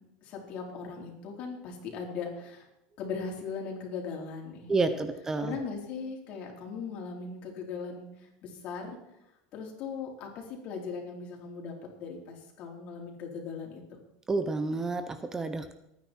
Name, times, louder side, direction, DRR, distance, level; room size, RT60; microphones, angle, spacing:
voice 1, 0.0-2.7 3.0-5.0 5.4-9.0 9.5-14.0, left 5 dB, 50° left, 0 dB, 4.3 m, -39 dB
voice 2, 4.7-5.5 14.3-15.7, right 3 dB, 15° right, 9 dB, 0.9 m, -29 dB
22.0 x 9.7 x 4.6 m, 0.86 s
supercardioid pair, 125°, 3 cm